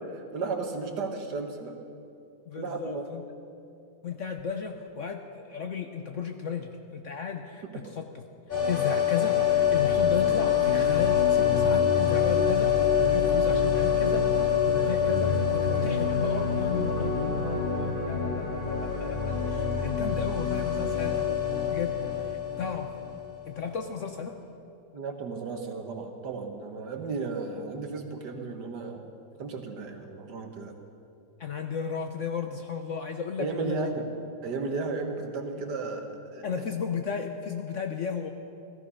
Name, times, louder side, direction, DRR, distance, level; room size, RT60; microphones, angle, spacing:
voice 1, 0.0-1.8 2.6-3.0 7.6-7.7 24.9-30.7 33.4-34.1 34.4-36.4, right 4 dB, 70° right, 4 dB, 1.8 m, -34 dB
voice 2, 2.5-3.2 4.0-8.2 8.6-21.3 21.7-22.9 23.5-24.4 31.4-33.9 36.4-38.3, left 6 dB, 55° left, 5 dB, 0.9 m, -34 dB
sound 1, 8.5-23.4 23.6-23.7, left 7 dB, 30° left, 3.5 m, -25 dB
16.5 x 14.0 x 5.5 m, 2.6 s
omnidirectional pair, 1.9 m